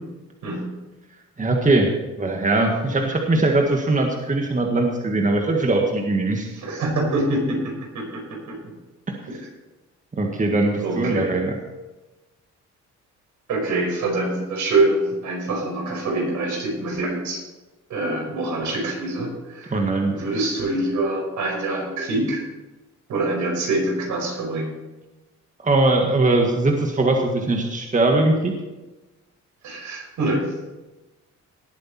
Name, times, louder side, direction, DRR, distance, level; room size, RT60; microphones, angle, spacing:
voice 1, 1.4-1.9 2.2-6.5 9.1-9.2 10.1-11.6 19.7-20.1 25.6-28.5, right 2 dB, 25° right, 2 dB, 1.7 m, -20 dB
voice 2, 6.6-8.6 10.8-11.3 13.5-17.4 17.9-19.8 20.1-22.4 23.1-24.7 29.6-30.5, right 2 dB, 75° right, -1 dB, 5.5 m, -25 dB
18.5 x 8.5 x 4.4 m, 1.1 s
cardioid pair, 90°, 30 cm